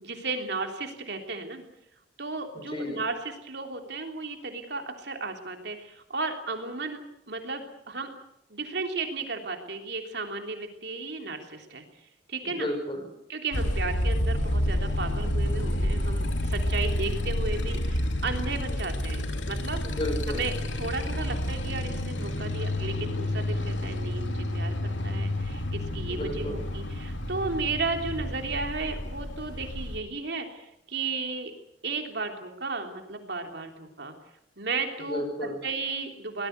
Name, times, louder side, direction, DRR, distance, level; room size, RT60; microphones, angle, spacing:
voice 1, 0.0-1.6 2.2-8.1 8.5-11.8 12.3-12.7 13.3-19.8 20.3-20.5 20.8-31.5 31.8-34.1 34.6-35.2 35.6-36.5, right 3 dB, 65° right, 4 dB, 3.4 m, -34 dB
voice 2, 2.5-3.0 12.4-13.1 19.8-20.5 26.1-26.6 35.0-35.6, left 1 dB, 30° left, 6 dB, 5.8 m, -33 dB
Motorcycle, 13.5-30.0, left 1 dB, 90° left, 2.8 m, -29 dB
24.0 x 19.0 x 8.1 m, 0.76 s
head